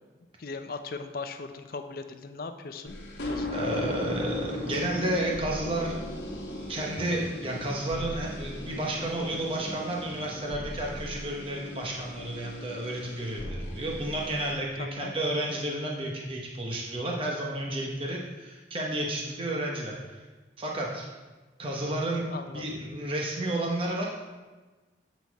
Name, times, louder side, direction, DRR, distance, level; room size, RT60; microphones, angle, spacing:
voice 1, 0.4-3.0 3.3-3.6 14.8-15.1 22.3-22.8, left 4 dB, 55° left, 7 dB, 0.5 m, -38 dB
sound 1, 2.9-14.5, left 1 dB, 80° left, 1.3 m, -38 dB
voice 2, 3.5-6.0 6.7-20.2 20.6-21.1 21.6-22.2 22.5-24.2, right 1 dB, 30° right, -1 dB, 0.9 m, -31 dB
8.2 x 4.1 x 4.6 m, 1.3 s
head